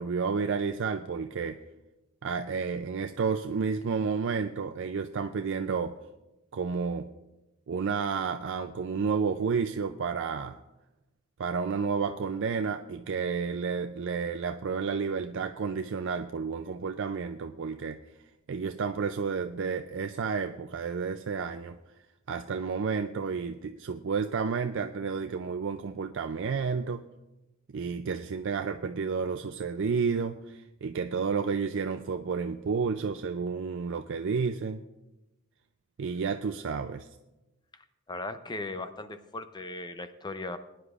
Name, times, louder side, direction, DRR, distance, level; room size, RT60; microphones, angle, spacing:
voice 1, 0.0-1.6 2.2-6.0 6.5-7.1 7.7-10.6 11.4-18.0 18.5-21.8 22.3-27.0 27.7-34.8 36.0-37.1, right 5 dB, 60° right, 7 dB, 0.4 m, -31 dB
voice 2, 37.7-40.6, left 2 dB, 20° left, 10 dB, 0.6 m, -38 dB
21.0 x 9.9 x 2.4 m, 1.0 s
head